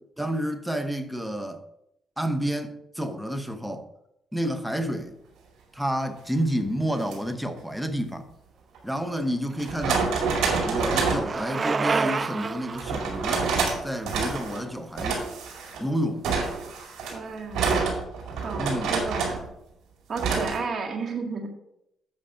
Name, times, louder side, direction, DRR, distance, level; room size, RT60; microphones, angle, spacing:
voice 1, 0.2-1.6 2.2-3.9 4.3-5.2 5.7-8.3 8.8-10.1 10.6-13.5 13.8-15.3 15.8-16.3 18.6-19.0, equal, 5° right, 0.9 m, -29 dB
sound 1, 7.0-7.2 8.7-8.8 9.6-11.3 12.8-13.8 14.1-14.6 15.0-15.8 16.2-19.4 20.2-20.6, right 4 dB, 85° right, 2.2 m, -27 dB
Bicycle, 9.3-15.3, right 4 dB, 35° right, 0.4 m, -31 dB
voice 2, 17.1-17.7 18.4-19.4 20.1-21.5, right 4 dB, 50° right, 1.7 m, -32 dB
7.8 x 5.6 x 5.1 m
cardioid pair, 90°, 0 cm